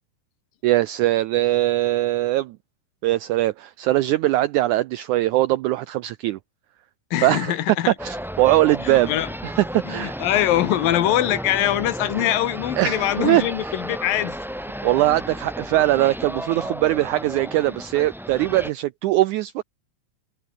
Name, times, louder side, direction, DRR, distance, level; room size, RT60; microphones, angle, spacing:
voice 1, 0.6-2.6 3.0-6.4 7.2-7.5 7.9-9.1 9.4-10.2 12.8-13.7 14.8-19.6, right 16 dB, 80° right, 1.7 m, -21 dB
voice 2, 7.1-7.9 8.8-9.3 9.8-14.4, left 12 dB, 75° left, 3.2 m, -23 dB
sound 1, 8.0-18.7, equal, ahead, 4.4 m, -33 dB
omnidirectional pair, 4.2 m